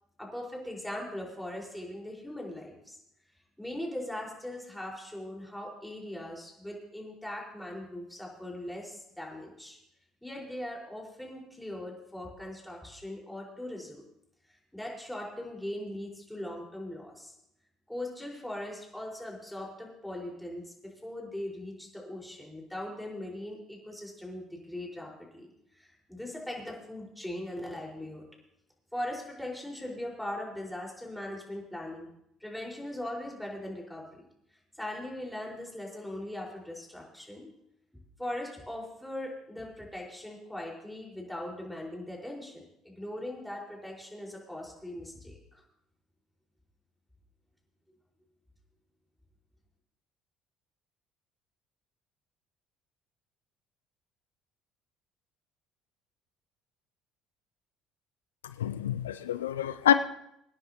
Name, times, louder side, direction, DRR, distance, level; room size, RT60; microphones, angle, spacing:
voice 1, 0.2-3.0 3.6-9.8 10.2-14.1 14.7-17.3 17.9-28.3 28.9-32.1 32.4-34.2 34.8-37.5 38.2-45.6, left 1 dB, 5° left, -2 dB, 4.9 m, -40 dB
voice 2, 58.6-59.9, left 10 dB, 90° left, 12 dB, 0.4 m, -26 dB
25.5 x 10.0 x 3.0 m, 0.76 s
hypercardioid pair, 60°, 0 cm